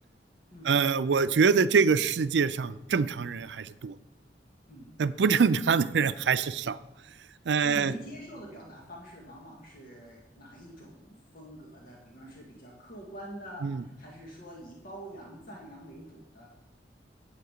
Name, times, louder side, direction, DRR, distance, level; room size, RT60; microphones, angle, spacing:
voice 1, 0.7-3.9 5.0-6.8 7.5-7.9 13.6-13.8, right 5 dB, 80° right, 14 dB, 0.4 m, -25 dB
voice 2, 7.6-16.5, right 1 dB, 55° left, -2 dB, 1.7 m, -45 dB
9.5 x 7.5 x 5.0 m, 0.93 s
head